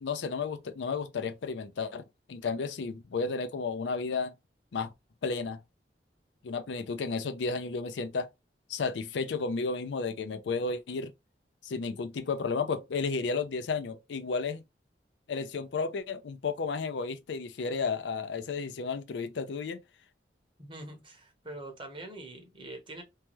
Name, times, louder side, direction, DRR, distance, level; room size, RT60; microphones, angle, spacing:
voice 1, 0.0-4.3 4.7-4.9 5.2-5.6 6.4-8.3 8.7-11.1 11.6-14.6 15.3-19.8, left 4 dB, 90° left, 0.4 m, -33 dB
voice 2, 20.6-23.0, right 2 dB, 30° right, 0.9 m, -44 dB
2.7 x 2.3 x 3.0 m
head